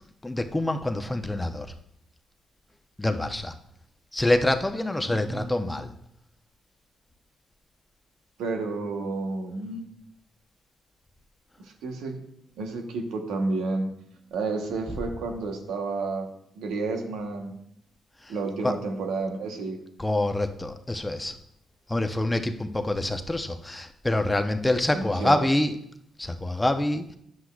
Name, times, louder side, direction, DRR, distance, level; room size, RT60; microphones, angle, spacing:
voice 1, 0.2-1.7 3.0-3.5 4.1-5.9 14.9-15.0 18.2-18.3 18.6-18.8 20.0-21.4 21.9-25.7 26.2-27.2, left 1 dB, 15° left, 7 dB, 0.7 m, -26 dB
voice 2, 5.1-5.8 8.4-9.8 11.6-12.2 12.6-13.9 14.3-16.3 16.5-17.6 18.3-19.8 24.9-25.5, right 3 dB, 90° right, 3 dB, 1.1 m, -31 dB
9.9 x 7.9 x 2.4 m, 0.72 s
cardioid pair, 70°, 0 cm